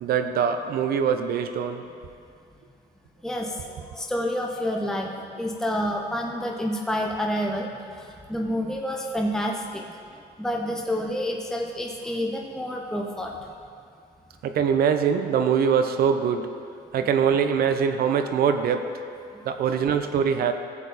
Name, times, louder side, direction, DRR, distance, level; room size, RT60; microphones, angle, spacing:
voice 1, 0.0-1.8 14.4-16.5 16.9-18.9 19.4-20.5, right 7 dB, 65° right, 7 dB, 0.8 m, -23 dB
voice 2, 3.2-10.0 10.4-13.4 19.3-19.5, equal, 5° left, 0 dB, 0.8 m, -29 dB
15.5 x 7.3 x 4.2 m, 2.4 s
cardioid pair, 110°, 17 cm